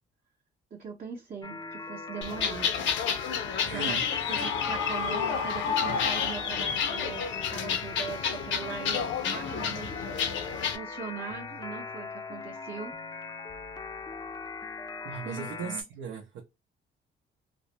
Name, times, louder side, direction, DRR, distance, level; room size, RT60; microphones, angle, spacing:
voice 1, 0.7-2.8 3.7-4.0 4.3-10.1 10.7-12.9 15.2-15.9, right 6 dB, 40° right, 0.7 m, -40 dB
sound 1, 1.4-15.8, left 4 dB, 20° left, 0.4 m, -40 dB
sound 2, 2.2-10.8, left 7 dB, 70° left, 0.6 m, -31 dB
voice 2, 3.6-4.1 15.0-16.4, right 6 dB, 85° right, 0.6 m, -38 dB
Screaming, 4.1-6.8, left 5 dB, 85° left, 0.9 m, -32 dB
2.4 x 2.0 x 2.8 m
cardioid pair, 90°, 20 cm